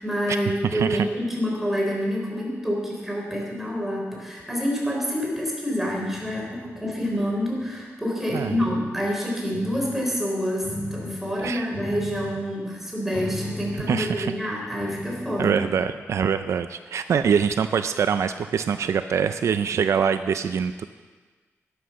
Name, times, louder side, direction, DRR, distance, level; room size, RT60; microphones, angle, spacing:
voice 1, 0.0-15.6, equal, 5° right, -2 dB, 3.8 m, -27 dB
voice 2, 0.7-1.1 8.3-8.6 11.4-11.7 13.9-14.3 15.4-20.8, right 7 dB, 70° right, 10 dB, 0.5 m, -24 dB
sound 1, 6.1-7.7 8.4-9.0 9.5-10.0 10.6-11.2 11.7-12.4 13.1-14.4 14.8-15.9, left 1 dB, 50° left, 2.4 m, -36 dB
11.5 x 11.5 x 6.4 m, 1.4 s
wide cardioid pair, 125°, 5 cm